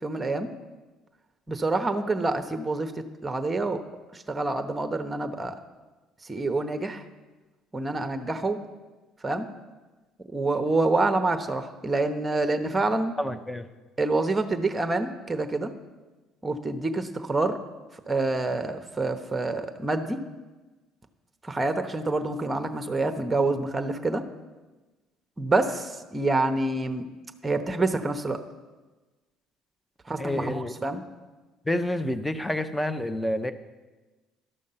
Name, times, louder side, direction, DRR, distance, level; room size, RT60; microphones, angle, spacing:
voice 1, 0.0-0.5 1.5-3.8 4.1-5.6 6.3-7.0 7.7-8.6 9.2-9.5 10.3-13.1 14.0-15.7 16.4-17.6 18.1-20.2 21.4-24.2 25.4-27.1 27.4-28.4 30.1-31.0, right 2 dB, 20° right, 8 dB, 1.0 m, -27 dB
voice 2, 13.2-13.7 30.2-30.7 31.6-33.5, left 1 dB, 10° left, 11 dB, 0.8 m, -28 dB
12.0 x 6.4 x 5.7 m, 1.2 s
hypercardioid pair, 65°, 0 cm